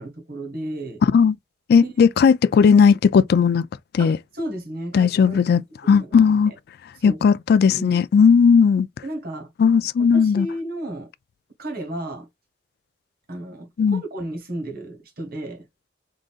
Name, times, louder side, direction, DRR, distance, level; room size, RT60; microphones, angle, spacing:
voice 1, 0.0-1.0 1.8-1.9 2.6-2.7 4.0-5.6 5.9-6.5 7.0-7.2 7.7-8.0 9.0-9.5 10.1-11.1 11.6-12.3 13.3-15.7, right 1 dB, 55° right, 1.5 m, -33 dB
voice 2, 1.0-1.4 1.7-3.7 3.9-4.2 4.9-5.6 5.9-6.5 7.0-8.9 9.6-10.5 13.8-14.0, left 6 dB, 60° left, 0.3 m, -16 dB
3.8 x 3.8 x 2.3 m
head